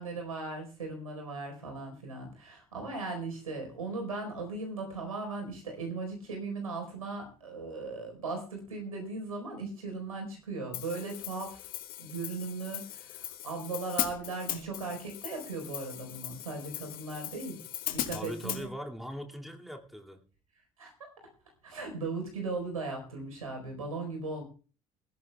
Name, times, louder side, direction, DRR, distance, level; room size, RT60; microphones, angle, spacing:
voice 1, 0.0-11.7 12.0-17.6 17.9-18.7 20.8-20.9 21.6-24.4, right 3 dB, 85° right, 4 dB, 4.3 m, -38 dB
Hi-hat, 10.7-18.6, left 13 dB, 55° left, 1.4 m, -39 dB
voice 2, 18.1-20.3, equal, ahead, 2 dB, 2.3 m, -41 dB
20.5 x 15.5 x 2.3 m, 0.38 s
figure-of-eight pair, 55°, 18 cm